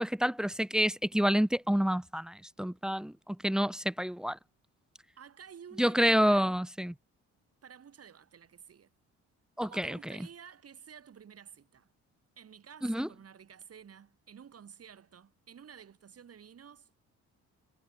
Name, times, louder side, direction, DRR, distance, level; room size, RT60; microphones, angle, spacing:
voice 1, 0.0-4.4 5.8-6.9 9.6-10.1 12.8-13.1, equal, ahead, 0.5 m, -28 dB
voice 2, 5.2-6.6 7.6-8.9 9.6-11.9 12.4-16.9, right 8 dB, 50° right, 6.7 m, -52 dB
cardioid pair, 90°, 30 cm